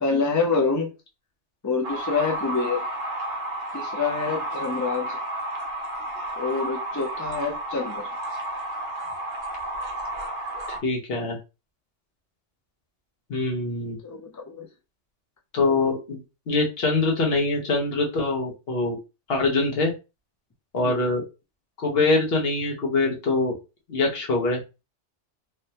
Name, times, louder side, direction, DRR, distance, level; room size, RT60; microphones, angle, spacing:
voice 1, 0.0-0.9 1.6-2.8 3.7-5.2 6.4-8.1 14.0-14.7 20.8-21.1, left 4 dB, 30° left, 0.3 m, -26 dB
sound 1, 1.8-10.8, right 1 dB, 50° right, 0.7 m, -32 dB
voice 2, 10.7-11.4 13.3-14.0 15.5-16.2 16.5-19.0 19.3-19.9 20.7-21.2 21.8-23.6 23.9-24.6, left 3 dB, 60° left, 1.0 m, -24 dB
3.3 x 2.1 x 2.7 m
omnidirectional pair, 1.2 m